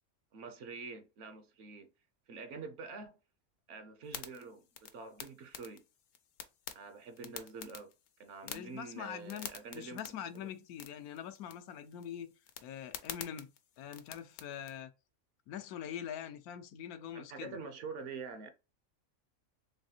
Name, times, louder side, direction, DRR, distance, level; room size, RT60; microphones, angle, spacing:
voice 1, 0.3-1.9 2.3-3.1 3.7-5.8 6.7-7.9 8.2-10.5 17.1-18.5, right 4 dB, 65° right, 0.9 m, -46 dB
sound 1, 4.0-14.8, left 8 dB, 65° left, 0.8 m, -49 dB
voice 2, 8.4-9.5 9.7-12.3 12.6-13.5 13.8-14.9 15.5-17.6, left 9 dB, 85° left, 1.1 m, -44 dB
4.0 x 3.3 x 2.7 m
omnidirectional pair, 1.5 m